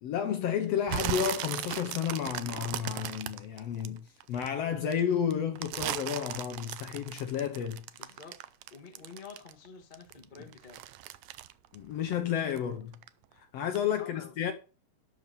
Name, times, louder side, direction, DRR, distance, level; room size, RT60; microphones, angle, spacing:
voice 1, 0.0-7.9 11.7-13.0 13.4-14.5, left 8 dB, 70° left, 1.7 m, -31 dB
sound 1, 0.9-4.5 4.9-9.7 9.9-12.6 12.9-13.3 13.7-13.8, right 13 dB, 80° right, 1.5 m, -37 dB
voice 2, 8.0-8.4 8.7-10.8 14.0-14.3, left 5 dB, 30° left, 0.8 m, -49 dB
12.5 x 4.9 x 6.7 m
omnidirectional pair, 3.7 m